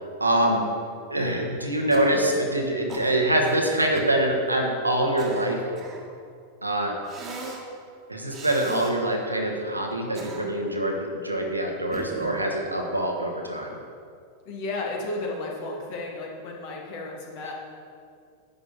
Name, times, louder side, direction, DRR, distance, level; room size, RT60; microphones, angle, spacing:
voice 1, 0.2-0.6 1.1-5.7 6.6-6.9 8.1-13.7, right 1 dB, 85° right, 1 dB, 1.3 m, -24 dB
Cough, 1.9-2.3 2.9-3.6 3.9-4.2 4.9-6.1 7.1-7.6 8.3-8.9 9.9-10.7 11.9-12.4, right 3 dB, 25° right, 1.6 m, -39 dB
voice 2, 14.5-17.5, left 2 dB, 45° left, -1 dB, 2.0 m, -33 dB
11.0 x 7.6 x 4.2 m, 2.3 s
figure-of-eight pair, 90°, 0 cm